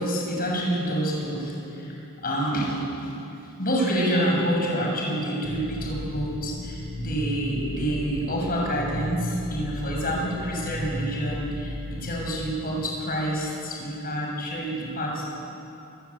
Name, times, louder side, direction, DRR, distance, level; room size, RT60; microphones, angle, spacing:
voice 1, 0.0-1.9 2.2-3.1 3.6-15.2, equal, 40° left, -1 dB, 7.2 m, -27 dB
sound 1, 5.4-12.4, equal, 55° right, 6.5 m, -34 dB
28.5 x 20.0 x 8.8 m, 2.8 s
head